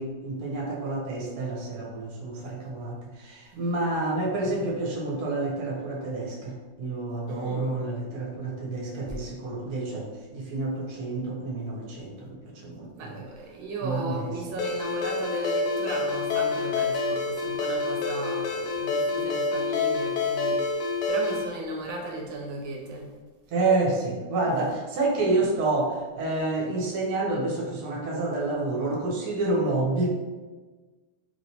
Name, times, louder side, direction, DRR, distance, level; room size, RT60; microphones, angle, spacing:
voice 1, 0.0-13.2 13.8-14.3 23.5-30.1, right 2 dB, 60° right, -3 dB, 1.1 m, -29 dB
voice 2, 3.5-3.9 7.3-7.8 9.1-9.2 12.9-23.2 24.5-24.6 25.2-25.4, right 2 dB, 80° right, 0 dB, 1.4 m, -36 dB
Ringtone, 14.6-21.5, left 4 dB, 75° left, 1.0 m, -27 dB
3.0 x 2.9 x 2.8 m, 1.3 s
omnidirectional pair, 2.1 m